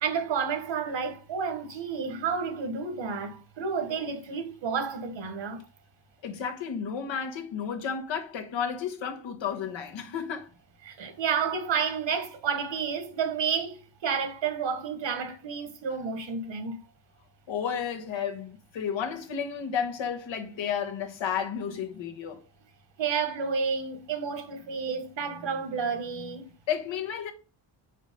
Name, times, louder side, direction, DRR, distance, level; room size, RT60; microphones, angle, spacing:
voice 1, 0.0-5.6 10.8-16.8 23.0-26.5, right 6 dB, 75° right, 1.4 m, -30 dB
voice 2, 6.2-10.5 17.5-22.4 26.7-27.3, left 7 dB, 80° left, 1.2 m, -32 dB
5.0 x 4.3 x 5.2 m
wide cardioid pair, 130°, 45 cm